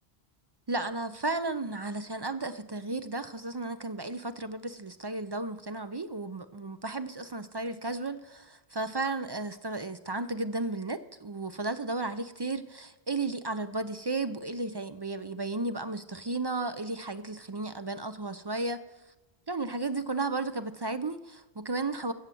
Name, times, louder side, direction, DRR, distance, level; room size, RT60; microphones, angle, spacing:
voice 1, 0.7-18.8 19.5-22.1, right 2 dB, 35° right, 11 dB, 0.4 m, -34 dB
16.0 x 6.5 x 7.6 m, 1.1 s
omnidirectional pair, 1.1 m